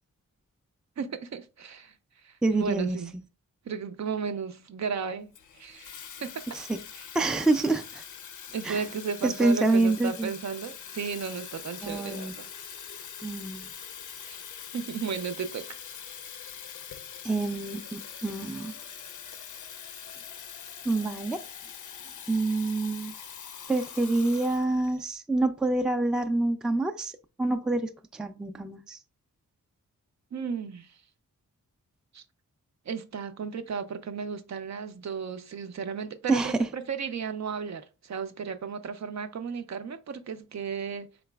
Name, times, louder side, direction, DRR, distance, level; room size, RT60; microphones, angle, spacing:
voice 1, 1.0-1.9 2.2-3.1 3.7-5.3 5.6-6.6 7.0-7.1 8.5-12.7 14.3-14.4 14.7-15.8 30.3-30.9 32.1-32.2 32.9-41.1, right 6 dB, 60° right, 0.5 m, -34 dB
voice 2, 2.4-3.0 6.5-6.8 7.1-8.0 8.6-8.8 9.2-10.3 11.8-12.3 13.2-13.7 17.2-18.7 20.9-21.4 22.3-23.1 23.7-27.1 27.4-29.0 36.3-36.6, right 2 dB, ahead, 0.3 m, -27 dB
Water tap faucet / Fill (with liquid), 5.3-25.1, left 8 dB, 70° left, 0.5 m, -43 dB
4.0 x 3.9 x 2.2 m
wide cardioid pair, 85°, 32 cm